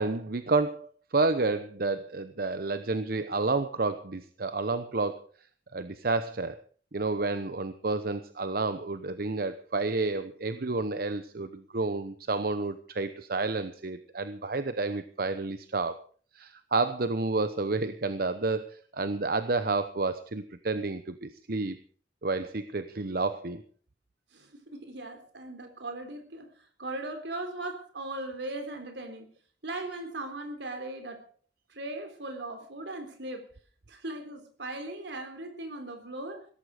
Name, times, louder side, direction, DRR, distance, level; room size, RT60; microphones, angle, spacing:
voice 1, 0.0-5.2 5.7-6.6 6.9-16.0 16.3-21.8 22.2-23.6, right 3 dB, 55° right, 0.8 m, -30 dB
voice 2, 24.3-29.3 29.6-31.2 31.7-33.5 33.9-36.5, right 2 dB, 75° right, 3.7 m, -38 dB
16.5 x 14.5 x 5.0 m
head